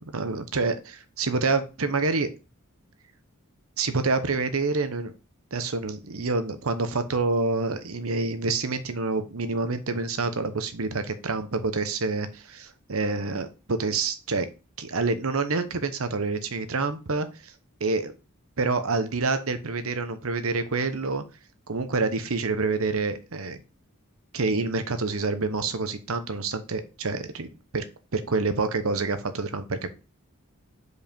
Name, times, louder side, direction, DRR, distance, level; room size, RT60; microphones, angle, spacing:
voice 1, 0.1-2.3 3.8-5.1 5.5-14.5 14.8-17.5 17.8-18.1 18.6-21.2 21.7-23.6 24.3-27.5 27.7-27.8 28.1-29.9, right 3 dB, 70° right, 10 dB, 0.9 m, -27 dB
5.3 x 4.8 x 5.2 m, 0.31 s
head